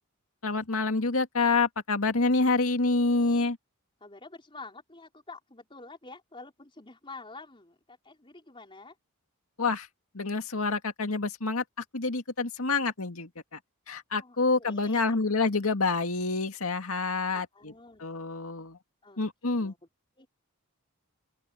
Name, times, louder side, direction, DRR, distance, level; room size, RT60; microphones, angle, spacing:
voice 1, 0.4-3.6 9.6-9.9 10.1-11.6 11.9-13.6 13.9-17.7 18.0-18.8 19.2-19.7, left 3 dB, 75° left, 2.2 m, -27 dB
voice 2, 4.0-9.0 14.2-15.2 17.3-18.0 19.0-19.2 19.4-19.8 20.2-20.3, left 3 dB, 25° left, 4.1 m, -48 dB
open air
head